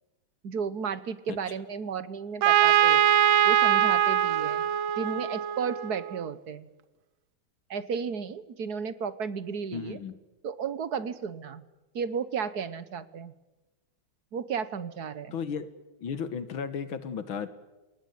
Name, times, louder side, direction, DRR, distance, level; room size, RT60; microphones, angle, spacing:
voice 1, 0.4-3.0 3.4-4.6 5.0-6.7 7.7-10.0 10.4-11.6 11.9-13.3 14.3-15.4, right 6 dB, 55° right, 15 dB, 1.6 m, -33 dB
Trumpet, 2.4-6.1, right 10 dB, 75° right, 1.8 m, -22 dB
voice 2, 9.7-10.2 15.3-15.7 16.0-17.5, left 6 dB, 75° left, 12 dB, 2.2 m, -34 dB
29.0 x 19.0 x 9.4 m, 1.1 s
omnidirectional pair, 2.2 m